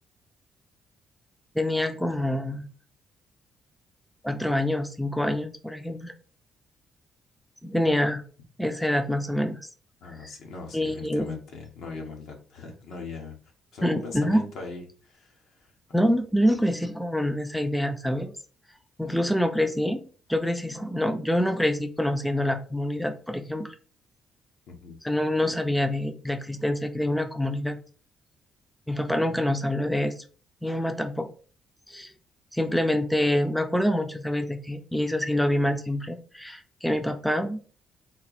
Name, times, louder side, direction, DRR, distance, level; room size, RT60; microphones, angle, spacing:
voice 1, 1.5-2.7 4.2-6.1 7.6-8.2 8.6-9.7 10.7-11.4 13.8-14.4 15.9-18.3 19.0-23.7 25.0-27.8 28.9-30.1 30.6-31.3 31.9-32.1 32.5-37.6, left 1 dB, 5° left, 7 dB, 0.5 m, -26 dB
voice 2, 10.0-13.4 13.7-15.7 24.7-25.0, left 3 dB, 75° left, 1 dB, 1.2 m, -40 dB
4.2 x 2.0 x 4.1 m, 0.39 s
cardioid pair, 90°, 0 cm